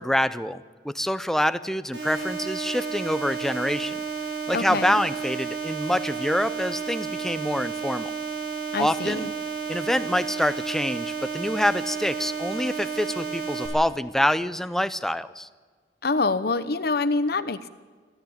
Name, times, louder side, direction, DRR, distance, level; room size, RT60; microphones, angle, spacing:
voice 1, 0.0-4.0 4.5-8.1 8.8-9.3 9.7-15.5, equal, ahead, 13 dB, 0.6 m, -26 dB
sound 1, 1.9-13.7, right 5 dB, 85° right, 7.6 m, -32 dB
voice 2, 4.5-5.0 8.7-9.3 16.0-17.7, left 3 dB, 60° left, 12 dB, 0.9 m, -26 dB
24.5 x 14.5 x 8.8 m, 1.5 s
head